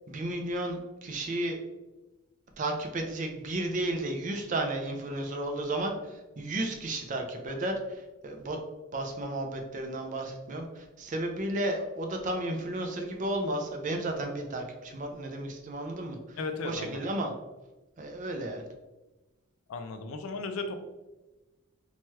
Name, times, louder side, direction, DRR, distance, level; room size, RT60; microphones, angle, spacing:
voice 1, 0.1-1.6 2.6-8.6 8.9-16.4 16.6-17.3 18.0-18.7, right 1 dB, 35° right, 3 dB, 0.4 m, -33 dB
voice 2, 16.4-17.0 19.7-20.7, left 3 dB, 75° left, 7 dB, 0.4 m, -35 dB
2.9 x 2.2 x 3.1 m, 1.1 s
head